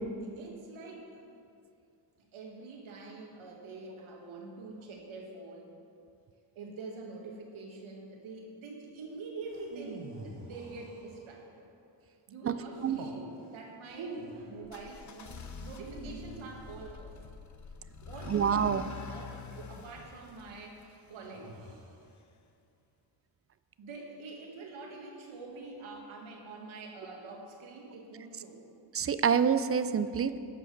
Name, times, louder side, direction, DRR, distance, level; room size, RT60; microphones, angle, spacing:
voice 1, 0.2-1.2 2.3-5.7 6.5-11.7 12.3-17.2 18.1-21.6 23.8-28.7, right 3 dB, 85° right, 0 dB, 1.9 m, -46 dB
sound 1, 9.5-11.5 12.7-13.2 13.9-14.6 15.6-17.0 18.4-19.7 21.2-22.0, right 3 dB, 65° right, 1.7 m, -46 dB
sound 2, 14.6-21.5, left 6 dB, 40° left, 0.7 m, -46 dB
voice 2, 18.3-18.8 28.9-30.4, right 7 dB, 30° right, 12 dB, 0.4 m, -27 dB
12.0 x 4.8 x 6.7 m, 2.5 s
cardioid pair, 90°, 46 cm